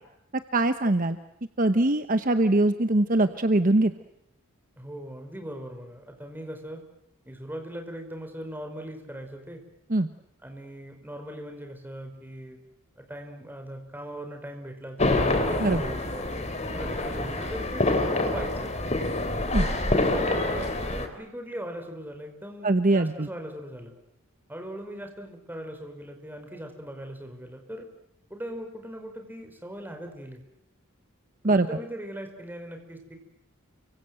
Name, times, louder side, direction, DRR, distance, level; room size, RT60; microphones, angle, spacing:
voice 1, 0.5-1.2 1.6-3.9 9.9-10.1 15.6-15.8 19.5-19.6 22.6-23.3 31.4-31.7, right 2 dB, 40° right, 9 dB, 1.0 m, -22 dB
voice 2, 4.8-6.8 7.2-9.6 10.4-12.6 13.0-16.3 16.6-18.7 19.5-23.9 24.5-27.9 28.3-30.4 31.4-33.2, equal, 10° right, 4 dB, 5.2 m, -40 dB
sound 1, 15.0-21.1, left 2 dB, 30° left, 3.5 m, -26 dB
30.0 x 25.0 x 7.8 m, 0.78 s
head